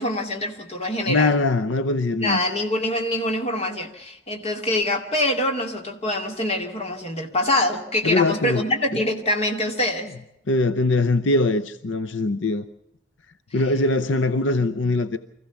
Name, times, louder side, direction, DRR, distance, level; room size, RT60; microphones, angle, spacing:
voice 1, 0.0-1.3 2.2-10.1, left 1 dB, 30° left, 2.4 m, -25 dB
voice 2, 1.1-2.4 8.0-8.6 10.5-12.7 13.5-15.2, left 2 dB, 70° left, 0.7 m, -22 dB
25.0 x 15.5 x 7.1 m
head